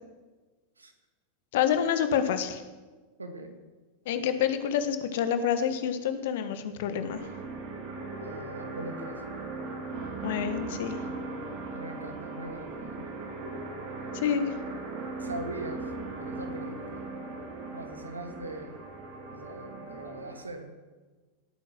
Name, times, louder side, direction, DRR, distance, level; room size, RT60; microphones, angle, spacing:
voice 1, 1.5-2.6 4.0-7.3 10.2-11.0 14.1-14.5, left 8 dB, 55° left, 10 dB, 1.4 m, -28 dB
voice 2, 3.2-3.6 8.2-9.3 11.7-13.1 15.2-15.9 16.2-17.1 17.7-18.7 19.3-20.7, right 1 dB, 80° right, 6 dB, 1.9 m, -41 dB
sound 1, 7.1-20.4, right 3 dB, 45° right, 3.2 m, -38 dB
18.0 x 9.2 x 6.1 m, 1.3 s
figure-of-eight pair, 90°, 0 cm